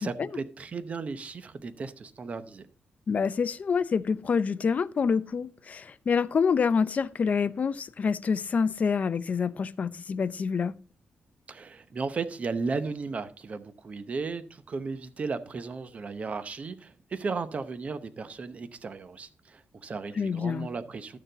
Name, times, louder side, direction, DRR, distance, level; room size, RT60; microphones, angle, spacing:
voice 1, 0.0-2.7 11.5-21.2, right 4 dB, 40° right, 0.8 m, -35 dB
voice 2, 3.1-10.7 20.2-20.7, left 5 dB, 40° left, 0.5 m, -27 dB
12.0 x 6.7 x 3.9 m
wide cardioid pair, 145°, 4 cm